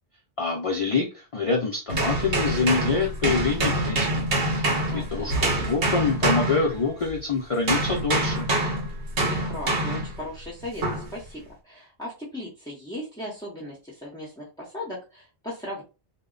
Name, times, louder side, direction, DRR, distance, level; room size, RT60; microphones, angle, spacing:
voice 1, 0.4-4.3 4.6-8.5, left 4 dB, 60° left, -1 dB, 0.3 m, -26 dB
sound 1, 1.9-7.2 7.7-10.2 10.8-11.1, right 2 dB, 60° right, 1.0 m, -25 dB
voice 2, 4.9-5.7 9.2-15.8, left 1 dB, 5° left, -6 dB, 0.5 m, -38 dB
2.1 x 2.0 x 3.6 m, 0.30 s
omnidirectional pair, 1.2 m